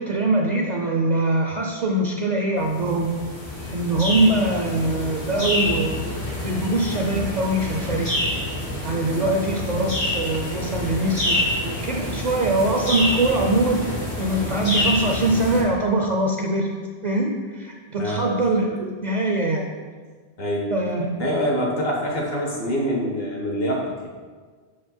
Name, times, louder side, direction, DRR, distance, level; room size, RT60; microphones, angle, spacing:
voice 1, 0.0-3.1 3.7-8.2 8.8-16.8 17.0-19.7 20.7-21.1, right 2 dB, 50° right, 1 dB, 0.6 m, -23 dB
sound 1, 2.6-15.6, left 1 dB, 80° left, 2.5 m, -27 dB
voice 2, 21.2-24.1, equal, 65° left, -1 dB, 1.5 m, -25 dB
6.1 x 5.0 x 4.4 m, 1.5 s
omnidirectional pair, 1.1 m